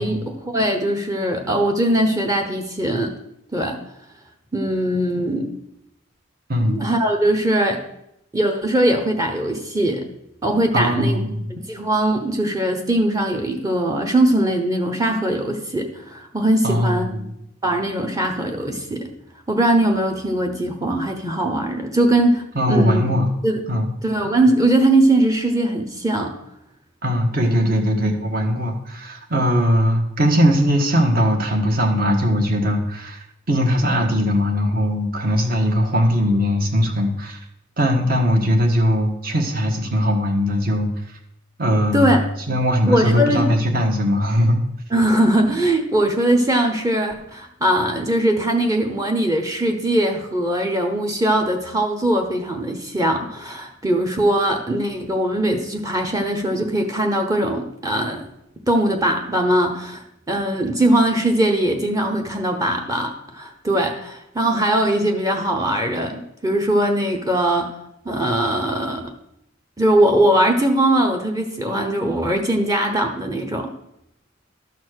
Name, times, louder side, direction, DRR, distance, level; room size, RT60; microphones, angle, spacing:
voice 1, 0.0-3.1 3.5-3.8 4.5-5.5 6.6-7.8 8.3-10.0 10.4-11.2 11.7-17.1 17.6-19.1 19.5-23.0 23.4-23.6 24.0-26.4 41.9-42.2 42.9-43.5 44.9-58.2 58.7-67.7 68.0-69.1 69.8-73.7, right 1 dB, 15° right, 3 dB, 0.9 m, -20 dB
voice 2, 10.7-11.4 16.6-17.3 22.5-23.3 23.7-23.9 27.0-37.4 37.8-40.9 41.6-42.2 42.5-44.6, equal, 50° right, 3 dB, 1.5 m, -20 dB
12.0 x 4.2 x 6.3 m, 0.80 s
head